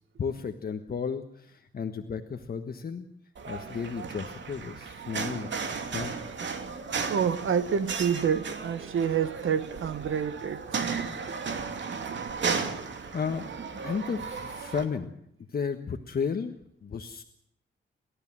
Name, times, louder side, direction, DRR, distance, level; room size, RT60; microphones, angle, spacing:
voice 1, 0.2-3.1 3.4-5.5 5.9-6.1 11.3-11.6 12.4-12.8 13.1-13.5 13.8-15.1 15.5-17.2, left 6 dB, 50° left, 1.4 m, -33 dB
sound 1, 3.3-14.8, right 5 dB, 65° right, 2.7 m, -35 dB
voice 2, 7.1-10.6 11.0-11.4, right 7 dB, 85° right, 1.6 m, -28 dB
29.5 x 13.5 x 7.4 m
wide cardioid pair, 150°, 20 cm